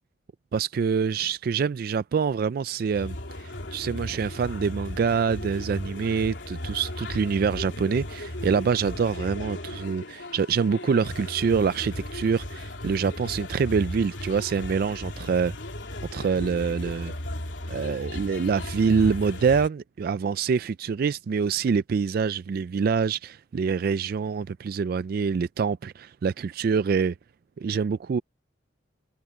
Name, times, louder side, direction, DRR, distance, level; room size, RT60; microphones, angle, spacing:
voice 1, 0.5-15.5 16.1-17.1 17.7-27.1 27.6-28.2, right 6 dB, 55° right, 0.3 m, -25 dB
sound 1, 2.9-19.7, left 1 dB, 80° left, 3.3 m, -36 dB
head